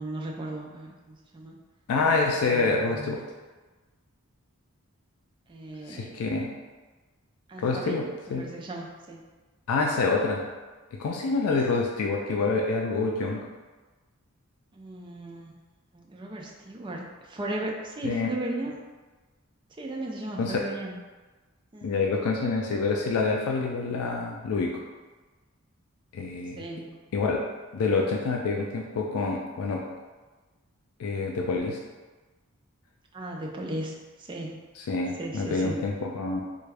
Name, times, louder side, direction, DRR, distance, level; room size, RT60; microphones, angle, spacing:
voice 1, 0.0-1.6 2.4-3.2 5.5-6.2 7.5-9.2 11.5-11.8 14.7-15.5 15.9-18.8 19.8-21.0 21.7-21.9 26.6-27.0 33.1-34.6 35.2-35.8, right 1 dB, 20° right, -1 dB, 0.4 m, -36 dB
voice 2, 1.9-3.2 5.9-6.5 7.6-8.0 8.3-8.5 9.7-10.5 10.9-13.4 18.0-18.3 20.4-20.6 21.8-24.7 26.1-26.6 27.1-27.4 27.7-29.8 31.0-31.8 34.9-36.4, left 3 dB, 85° left, 0 dB, 0.4 m, -27 dB
3.4 x 2.2 x 3.3 m, 1.3 s
head